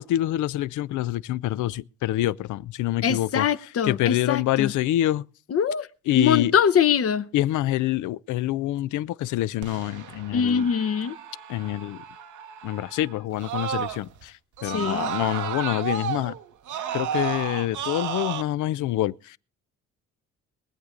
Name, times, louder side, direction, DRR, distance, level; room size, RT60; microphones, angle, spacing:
voice 1, 0.0-3.5 3.8-5.2 6.1-6.5 7.3-10.7 11.5-12.0 12.6-16.4 16.9-19.4, left 14 dB, 80° left, 0.5 m, -26 dB
voice 2, 3.0-4.7 5.5-5.9 6.1-7.3 10.3-11.2 14.6-15.1, left 7 dB, 50° left, 0.8 m, -23 dB
Screaming, 9.6-14.2 14.6-18.4, right 9 dB, 75° right, 1.2 m, -33 dB
22.5 x 8.1 x 3.7 m
cardioid pair, 90°, 30 cm